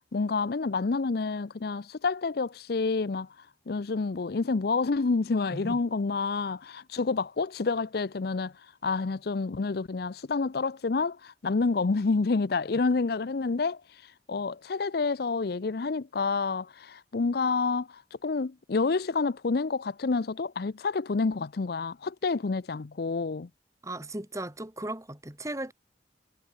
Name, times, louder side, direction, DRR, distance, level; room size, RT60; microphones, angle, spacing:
voice 1, 0.1-3.3 3.7-8.5 8.8-23.5, left 4 dB, 60° left, 0.5 m, -28 dB
voice 2, 23.8-25.7, right 1 dB, 15° right, 2.1 m, -36 dB
head